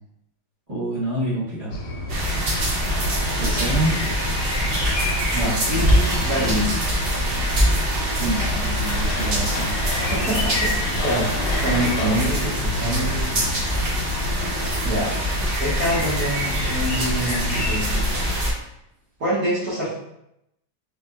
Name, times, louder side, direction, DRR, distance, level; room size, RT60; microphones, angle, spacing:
voice 1, 0.7-1.8 3.4-3.9 8.2-9.8, right 1 dB, 25° right, -10 dB, 1.0 m, -27 dB
sound 1, 1.7-18.4, left 2 dB, 65° left, 0.9 m, -31 dB
sound 2, 2.1-18.5, right 1 dB, 80° right, 0.5 m, -24 dB
voice 2, 5.3-6.7 10.1-11.3 11.6-13.5 14.8-15.1 15.6-18.0 19.2-19.9, equal, 60° right, -12 dB, 1.5 m, -25 dB
sound 3, 5.9-12.4, left 4 dB, 85° left, 1.2 m, -35 dB
3.3 x 2.9 x 2.2 m, 0.81 s
omnidirectional pair, 1.8 m